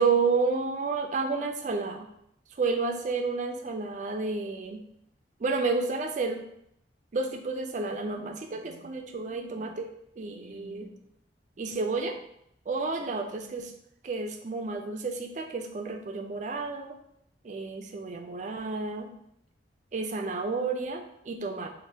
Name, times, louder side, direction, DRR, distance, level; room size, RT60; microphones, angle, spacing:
voice 1, 0.0-2.1 2.6-4.8 5.4-6.4 7.1-9.9 10.2-10.9 11.6-12.2 12.7-13.7 14.0-17.0 17.4-19.1 19.9-21.7, right 4 dB, 40° right, 4 dB, 0.3 m, -30 dB
3.4 x 2.5 x 2.7 m, 0.73 s
head